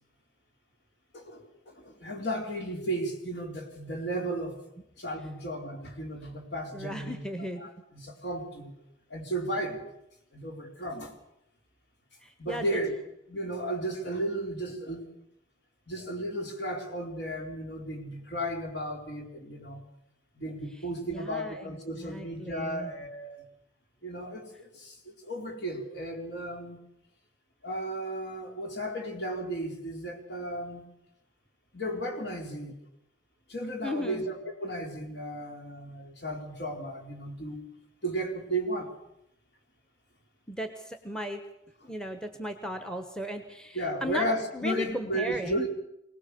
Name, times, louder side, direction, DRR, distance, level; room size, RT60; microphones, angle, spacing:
voice 1, 1.1-4.6 5.0-7.2 7.6-8.7 9.1-9.8 10.3-11.1 12.4-12.9 13.3-15.1 15.9-19.8 20.4-23.4 24.0-26.8 27.6-30.9 31.7-32.8 33.5-37.6 38.0-38.9 41.8-41.9 43.7-45.7, right 1 dB, 55° left, 2 dB, 4.4 m, -34 dB
voice 2, 6.7-7.7 12.2-12.8 20.7-22.9 33.8-34.2 40.5-41.4 41.9-44.2 44.5-45.7, equal, 5° left, 7 dB, 1.3 m, -36 dB
24.0 x 18.5 x 6.9 m, 0.81 s
head